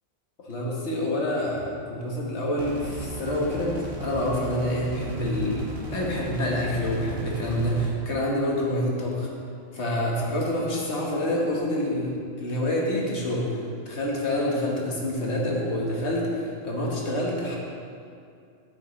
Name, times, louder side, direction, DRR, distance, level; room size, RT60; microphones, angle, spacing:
voice 1, 0.4-9.3 9.7-17.6, left 1 dB, 65° left, -3 dB, 1.7 m, -27 dB
sound 1, 2.6-7.9, equal, 55° right, 1.4 m, -35 dB
10.0 x 7.7 x 3.1 m, 2.4 s
omnidirectional pair, 1.3 m